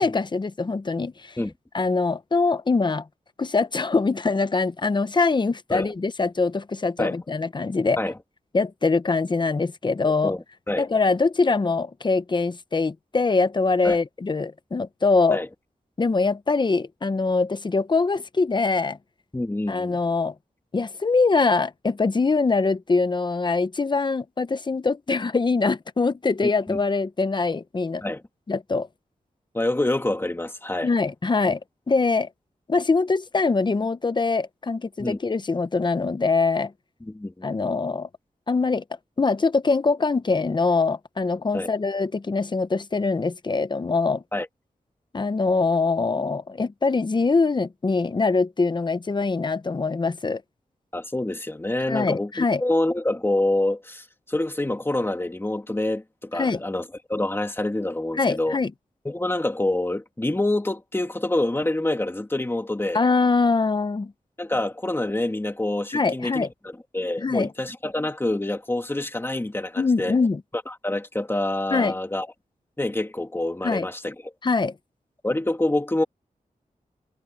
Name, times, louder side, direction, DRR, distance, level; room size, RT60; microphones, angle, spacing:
voice 1, 0.0-1.4 1.7-3.1 3.4-8.0 8.5-10.4 10.8-15.4 16.0-19.0 19.7-20.3 20.7-28.0 28.5-28.9 30.8-31.6 31.9-32.3 32.7-36.7 37.4-38.1 38.5-38.8 39.2-44.2 45.1-50.4 51.9-52.6 56.3-56.6 58.2-58.7 62.9-64.1 65.9-66.5 67.2-67.5 69.8-70.4 71.7-71.9 73.6-73.9 74.4-74.7, left 4 dB, 30° left, 0.7 m, -23 dB
voice 2, 10.0-10.9 13.8-14.0 15.3-15.5 19.3-20.0 26.7-26.8 28.0-28.2 29.5-30.9 35.0-35.2 37.1-37.5 41.5-41.7 44.3-44.5 50.9-56.8 57.1-58.6 59.0-63.0 64.4-70.2 70.7-72.3 72.8-74.3 75.2-76.0, left 1 dB, 15° left, 2.2 m, -26 dB
wide cardioid pair, 140°, 14 cm